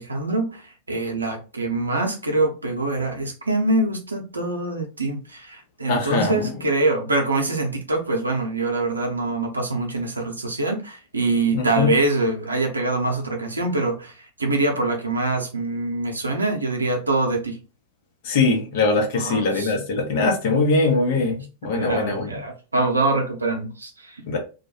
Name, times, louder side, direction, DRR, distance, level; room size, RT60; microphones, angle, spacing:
voice 1, 0.0-17.6 19.2-19.7 21.7-24.4, right 2 dB, 80° right, 0.6 m, -24 dB
voice 2, 5.9-6.5 11.5-11.9 18.2-21.3 21.6-22.3 24.3-24.4, left 3 dB, 55° left, 0.8 m, -21 dB
2.3 x 2.1 x 2.8 m
figure-of-eight pair, 90°, 0 cm